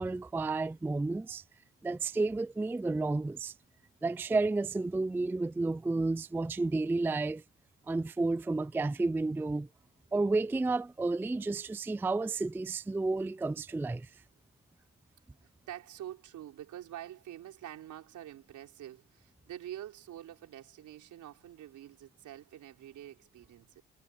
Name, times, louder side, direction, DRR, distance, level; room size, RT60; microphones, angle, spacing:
voice 1, 0.0-1.4 1.8-3.5 4.0-7.4 7.9-9.7 10.1-14.1, right 3 dB, 5° right, 0.3 m, -31 dB
voice 2, 15.7-23.8, right 12 dB, 80° right, 4.5 m, -46 dB
cardioid pair, 90°, 30 cm